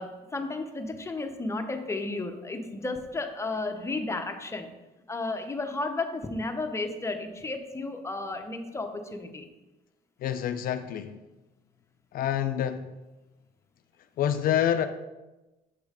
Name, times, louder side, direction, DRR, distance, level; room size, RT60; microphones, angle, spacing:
voice 1, 0.0-4.7 5.1-9.5, left 2 dB, 15° left, 5 dB, 0.6 m, -33 dB
voice 2, 10.2-11.2 12.1-12.9 14.2-14.9, left 10 dB, 60° left, 10 dB, 0.4 m, -27 dB
7.3 x 3.1 x 4.9 m, 1.1 s
cardioid pair, 110°, 17 cm